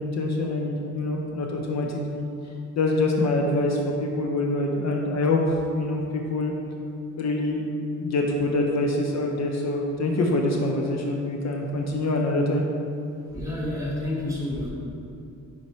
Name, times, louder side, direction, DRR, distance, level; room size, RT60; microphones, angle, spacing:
voice 1, 0.0-2.2 2.8-6.5 7.2-7.7 8.0-12.6, left 2 dB, 55° left, 1 dB, 0.6 m, -25 dB
voice 2, 13.3-14.7, left 1 dB, 10° right, -5 dB, 1.4 m, -29 dB
5.3 x 4.8 x 4.2 m, 2.7 s
cardioid pair, 130°, 32 cm